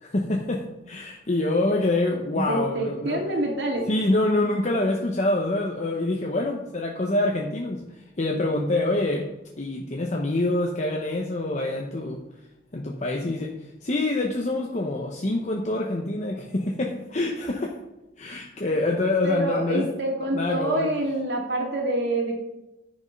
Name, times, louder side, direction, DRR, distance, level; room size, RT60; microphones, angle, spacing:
voice 1, 0.0-3.2 3.9-7.8 8.2-9.3 9.6-12.2 12.7-13.5 13.8-17.8 18.2-19.9 20.3-20.9, left 2 dB, 40° left, 0 dB, 0.9 m, -26 dB
voice 2, 2.3-3.9 19.2-22.4, right 1 dB, 70° right, 0 dB, 2.4 m, -26 dB
10.5 x 6.4 x 5.3 m, 0.96 s
head